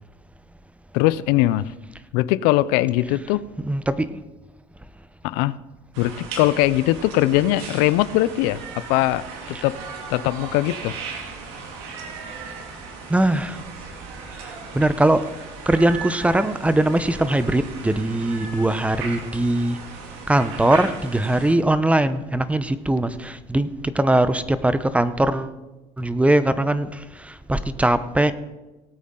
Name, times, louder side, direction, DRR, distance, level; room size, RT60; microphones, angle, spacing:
voice 1, 0.9-1.7 2.1-3.4 5.2-5.6 6.0-9.8 10.1-10.9, left 15 dB, 85° left, 17 dB, 0.5 m, -21 dB
voice 2, 3.6-4.2 13.1-13.6 14.4-15.3 15.7-19.8 20.3-25.5 26.0-28.3, right 1 dB, 10° right, 13 dB, 0.7 m, -21 dB
sound 1, 5.9-21.6, right 5 dB, 90° right, 2.1 m, -37 dB
18.0 x 8.5 x 3.8 m, 1.1 s
supercardioid pair, 105°, 16 cm